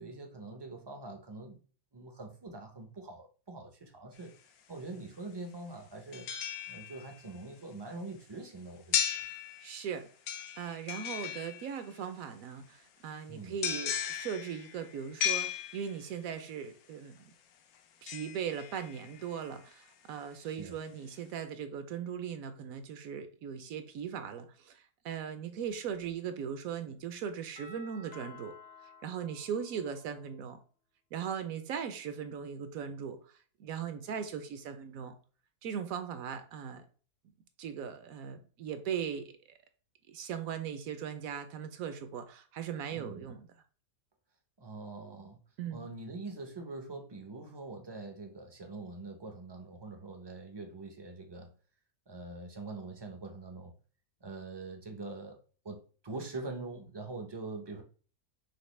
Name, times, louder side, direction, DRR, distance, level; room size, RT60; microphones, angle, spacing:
voice 1, 0.0-1.6 1.9-4.3 4.7-6.3 6.7-9.0 13.3-13.6 20.4-20.8 42.9-43.3 44.6-45.4 45.7-51.5 52.1-53.8 54.2-55.4 55.6-57.8, right 3 dB, 40° right, 0.3 m, -44 dB
sound 1, 4.2-4.3 6.1-7.3 8.9-9.9 10.3-12.0 13.6-16.2 18.1-19.2 19.7-19.8, left 9 dB, 75° left, 1.1 m, -36 dB
voice 2, 9.6-10.1 10.6-17.3 18.0-28.5 29.0-30.6 31.1-33.2 33.6-35.1 35.6-36.9 37.6-39.6 40.1-43.4 45.6-45.9, right 8 dB, 70° right, 1.0 m, -39 dB
Doorbell, 27.6-30.4, left 3 dB, 45° left, 0.6 m, -53 dB
5.8 x 2.8 x 3.2 m
omnidirectional pair, 1.6 m